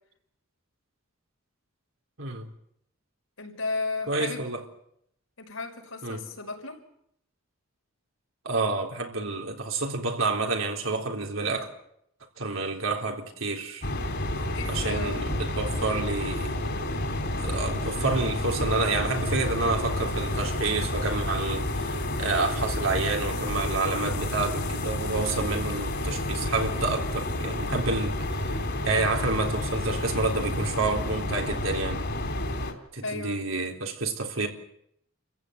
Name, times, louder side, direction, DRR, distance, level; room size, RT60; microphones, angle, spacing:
voice 1, 2.2-2.5 4.1-4.6 6.0-6.2 8.5-11.7 12.4-13.9 14.7-17.1 17.4-28.4 28.9-32.0 32.9-34.5, right 3 dB, 75° right, 3.8 m, -29 dB
voice 2, 3.4-4.5 5.4-6.8 14.5-15.2 33.0-33.4, left 3 dB, 80° left, 5.8 m, -34 dB
sound 1, 13.8-32.7, left 1 dB, 55° left, 3.4 m, -30 dB
29.0 x 15.0 x 9.3 m
head